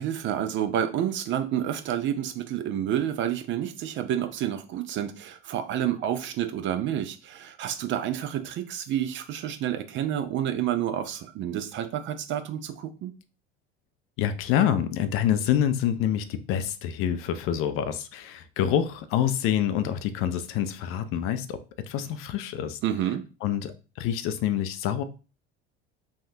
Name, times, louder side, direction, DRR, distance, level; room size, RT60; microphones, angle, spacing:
voice 1, 0.0-13.1 22.8-23.2, right 10 dB, 40° right, 0.4 m, -29 dB
voice 2, 14.2-21.6 21.8-22.8 23.4-25.0, left 10 dB, 45° left, 0.4 m, -26 dB
3.4 x 2.3 x 2.7 m
hypercardioid pair, 70°, 31 cm